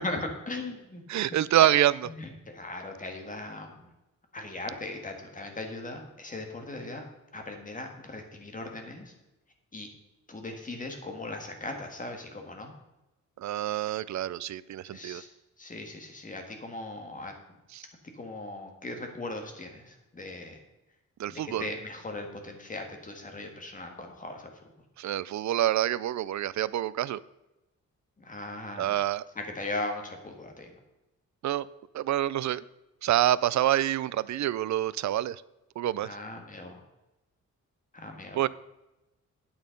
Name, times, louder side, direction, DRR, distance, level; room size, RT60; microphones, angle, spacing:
voice 1, 0.0-1.0 2.2-3.9 4.3-7.1 7.3-9.1 9.7-9.9 10.3-12.8 14.9-15.3 15.6-17.3 18.2-20.6 21.3-24.5 28.2-29.0 29.4-30.7 36.0-36.8 37.9-38.4, left 2 dB, 25° left, 1.7 m, -38 dB
voice 2, 1.1-2.1 13.4-15.2 17.7-17.8 21.2-21.7 25.0-27.2 28.8-29.2 31.4-31.7 31.9-32.6 33.0-35.4 35.8-36.2 38.3-38.5, right 12 dB, 65° right, 0.4 m, -27 dB
9.3 x 8.8 x 5.2 m
wide cardioid pair, 165°, 31 cm